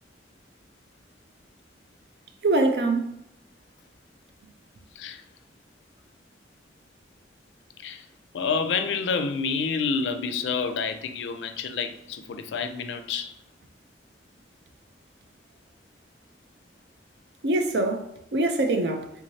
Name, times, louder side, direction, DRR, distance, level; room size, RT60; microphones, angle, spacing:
voice 1, 2.4-3.1 17.4-19.1, right 2 dB, 65° right, 0.5 m, -24 dB
voice 2, 8.3-13.3, left 5 dB, 90° left, 0.4 m, -28 dB
3.5 x 3.1 x 2.7 m
head